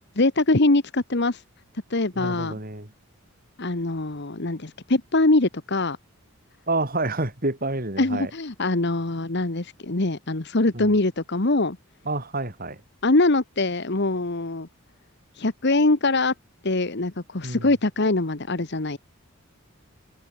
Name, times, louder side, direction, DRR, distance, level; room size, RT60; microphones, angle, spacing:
voice 1, 0.0-1.4 1.9-2.5 3.6-6.0 8.0-11.8 13.0-14.7 15.4-16.3 16.6-19.0, left 2 dB, 50° left, 1.3 m, -23 dB
voice 2, 2.2-2.9 6.7-8.3 10.7-10.9 12.1-12.8 17.4-17.7, right 2 dB, 40° right, 3.8 m, -28 dB
head